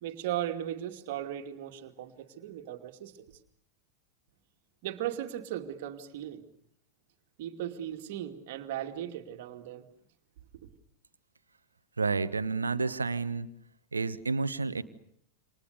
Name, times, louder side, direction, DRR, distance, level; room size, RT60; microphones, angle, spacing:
voice 1, 0.0-3.3 4.8-6.4 7.4-9.8, right 11 dB, 50° right, 6 dB, 2.6 m, -37 dB
voice 2, 12.0-13.5 13.9-14.8, right 4 dB, 75° right, 13 dB, 1.1 m, -30 dB
28.5 x 26.5 x 6.8 m, 0.71 s
figure-of-eight pair, 90°, 0 cm